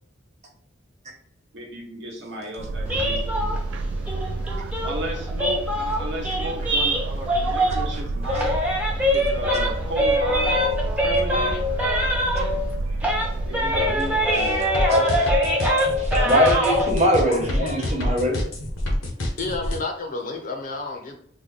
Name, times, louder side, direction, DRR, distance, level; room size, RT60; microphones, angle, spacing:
voice 1, 1.5-3.5 4.8-8.5 9.1-10.6 11.0-11.5 13.4-14.6, equal, 65° right, -1 dB, 1.0 m, -34 dB
sound 1, 2.6-14.9, right 2 dB, 85° right, 0.4 m, -30 dB
sound 2, 2.9-8.0 8.2-12.7 13.0-16.9, equal, 5° right, 0.5 m, -24 dB
sound 3, 14.7-19.8, left 1 dB, 85° left, 0.8 m, -26 dB
voice 2, 14.9-15.3 16.0-18.4, equal, 35° right, -1 dB, 0.9 m, -21 dB
voice 3, 17.2-17.9 19.4-21.2, left 3 dB, 45° left, 3 dB, 0.5 m, -31 dB
3.9 x 2.1 x 3.2 m, 0.65 s
head